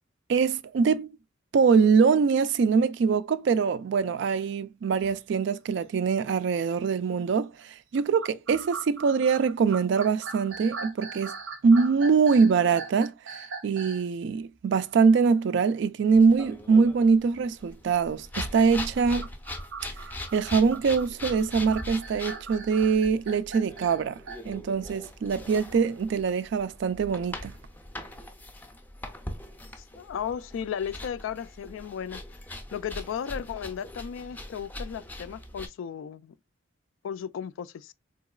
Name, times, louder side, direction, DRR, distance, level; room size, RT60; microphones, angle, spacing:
voice 1, 0.3-1.1 1.5-11.3 11.6-13.1 13.6-19.3 20.3-27.5, right 5 dB, 65° right, 0.3 m, -23 dB
sound 1, 5.0-5.2 5.8-5.9 6.5-6.8 7.9-14.1 18.9-24.5, right 4 dB, 85° right, 0.7 m, -40 dB
sound 2, 16.1-35.7, left 1 dB, 10° left, 0.4 m, -41 dB
voice 2, 29.8-32.2 32.7-36.3 37.0-37.9, left 8 dB, 80° left, 0.3 m, -35 dB
3.9 x 2.8 x 2.3 m
head